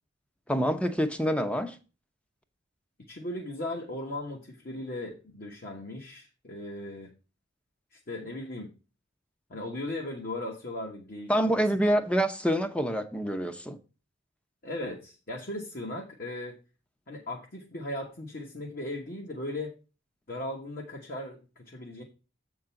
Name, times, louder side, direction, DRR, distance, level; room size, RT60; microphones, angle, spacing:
voice 1, 0.5-1.8 11.3-13.8, equal, 5° left, 0.7 m, -26 dB
voice 2, 3.1-7.1 7.9-8.7 9.5-11.3 11.9-12.0 14.6-16.6 17.1-19.7 20.3-22.0, left 1 dB, 45° left, 1.2 m, -37 dB
7.9 x 3.8 x 5.8 m
head